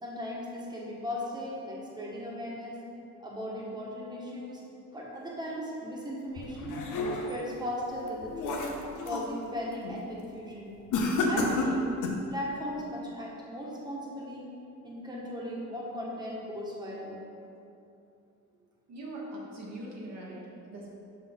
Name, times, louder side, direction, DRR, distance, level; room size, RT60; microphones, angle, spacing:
voice 1, 0.0-2.8 3.2-4.6 4.9-6.9 7.3-8.6 9.0-10.7 11.2-11.9 12.3-14.5 14.8-17.2, equal, 15° right, -5 dB, 1.4 m, -37 dB
sound 1, 6.4-7.5 8.0-9.3 9.7-10.0 10.9-12.3, left 2 dB, 90° left, 0.8 m, -31 dB
voice 2, 18.9-20.9, right 1 dB, 60° right, -4 dB, 1.4 m, -42 dB
5.9 x 5.5 x 3.7 m, 2.6 s
cardioid pair, 90°, 30 cm